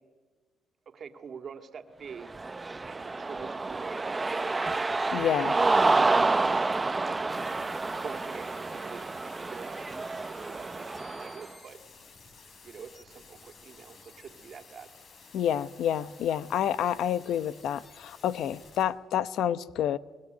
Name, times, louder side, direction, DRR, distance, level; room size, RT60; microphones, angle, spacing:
voice 1, 0.9-2.3 2.9-4.6 5.3-5.5 7.4-9.9 10.3-11.8 12.6-14.9, right 6 dB, 50° right, 2.2 m, -46 dB
Cheering, 2.2-11.4, right 3 dB, 25° right, 0.8 m, -28 dB
voice 2, 5.1-5.6 15.3-20.0, left 10 dB, 80° left, 0.9 m, -28 dB
sound 1, 7.3-18.9, left 4 dB, 55° left, 7.0 m, -53 dB
24.0 x 20.5 x 9.4 m
cardioid pair, 90°, 0 cm